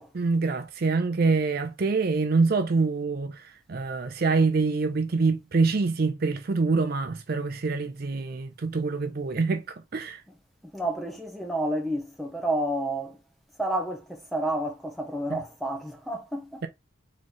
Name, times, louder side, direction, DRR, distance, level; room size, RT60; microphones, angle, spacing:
voice 1, 0.1-10.2 15.3-15.4, right 4 dB, 50° right, 0.5 m, -25 dB
voice 2, 10.6-13.2 13.6-16.6, right 1 dB, ahead, 0.9 m, -30 dB
3.9 x 3.2 x 3.8 m
head